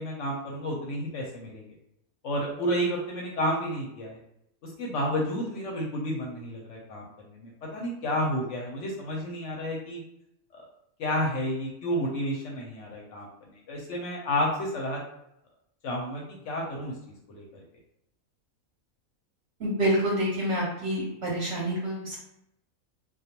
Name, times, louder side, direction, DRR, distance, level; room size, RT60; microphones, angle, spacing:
voice 1, 0.0-1.7 2.2-4.2 4.6-10.0 10.5-10.6 11.0-15.0 15.8-16.9 17.3-17.6, equal, 65° left, -2 dB, 0.8 m, -31 dB
voice 2, 19.6-22.2, right 1 dB, 60° right, -4 dB, 0.8 m, -27 dB
2.3 x 2.2 x 2.8 m, 0.81 s
omnidirectional pair, 1.5 m